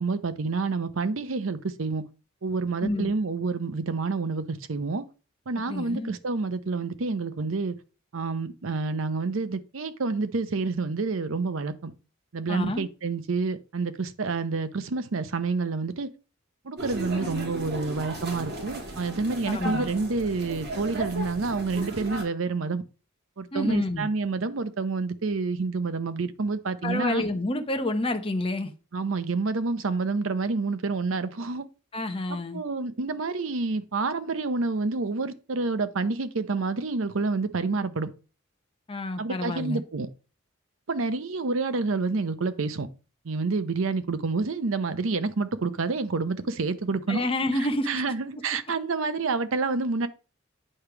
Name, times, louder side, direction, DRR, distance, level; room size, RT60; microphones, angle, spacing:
voice 1, 0.0-2.0 2.4-5.0 5.5-7.8 8.1-11.9 12.3-16.1 16.6-22.8 23.4-27.2 28.9-31.7 32.3-38.1 39.2-40.1 40.9-42.9 43.2-47.3 47.9-50.1, right 3 dB, 70° right, 0.7 m, -28 dB
voice 2, 2.8-3.1 5.7-6.1 12.5-12.8 19.5-19.8 23.5-24.1 26.8-28.7 31.9-32.6 38.9-39.8 47.1-48.0, left 1 dB, 25° left, 0.9 m, -28 dB
sound 1, 16.8-22.2, right 1 dB, 50° right, 2.0 m, -35 dB
8.6 x 3.3 x 5.9 m
head